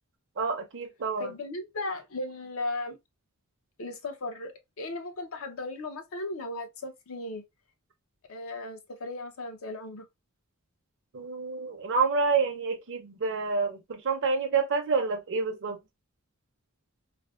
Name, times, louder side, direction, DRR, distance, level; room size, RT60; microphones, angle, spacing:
voice 1, 0.4-1.3 11.1-15.8, right 4 dB, 55° right, 0.6 m, -28 dB
voice 2, 1.2-3.0 3.8-7.4 8.3-10.0, left 2 dB, 70° left, 0.7 m, -36 dB
3.3 x 2.0 x 2.3 m
head